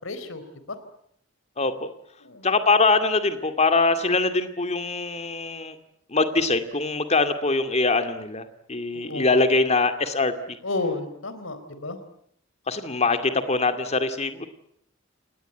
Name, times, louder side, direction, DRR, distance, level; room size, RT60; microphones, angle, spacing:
voice 1, 0.0-0.8 2.2-2.5 8.9-9.3 10.6-12.0, left 2 dB, 80° left, 11 dB, 4.1 m, -32 dB
voice 2, 1.6-1.9 2.4-5.7 6.1-10.6 12.7-14.5, left 3 dB, 35° left, 9 dB, 2.3 m, -23 dB
29.0 x 19.0 x 9.1 m, 0.71 s
head